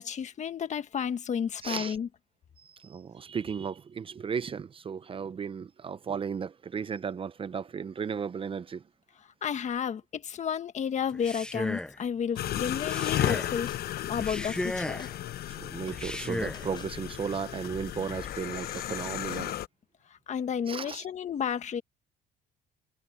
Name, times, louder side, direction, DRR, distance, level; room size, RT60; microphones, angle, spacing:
voice 1, 0.0-2.1 9.4-13.7 14.0-15.1 20.1-21.8, left 7 dB, 45° left, 1.6 m, -32 dB
voice 2, 1.6-2.0 2.6-8.8 15.5-19.6 20.7-21.0, right 6 dB, 30° right, 0.7 m, -35 dB
Male speech man speaking, 11.1-12.0 12.8-13.6 14.2-15.1 15.9-16.7, left 1 dB, 5° left, 0.6 m, -35 dB
sound 1, 12.3-19.4, left 4 dB, 25° left, 5.5 m, -49 dB
sound 2, 12.4-19.7, left 13 dB, 65° left, 0.9 m, -34 dB
cardioid pair, 110°, 17 cm